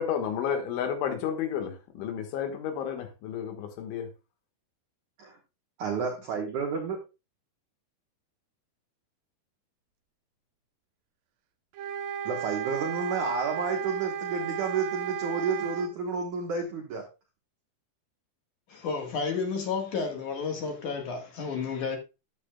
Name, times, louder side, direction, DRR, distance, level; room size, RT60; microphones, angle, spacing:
voice 1, 0.0-4.1, left 8 dB, 80° left, 4.0 m, -31 dB
voice 2, 5.8-7.0 12.3-17.1, right 5 dB, 70° right, 1.9 m, -30 dB
sound 1, 11.7-15.9, right 8 dB, 90° right, 1.9 m, -34 dB
voice 3, 18.7-22.0, left 5 dB, 60° left, 2.3 m, -31 dB
13.0 x 9.4 x 2.3 m
omnidirectional pair, 5.3 m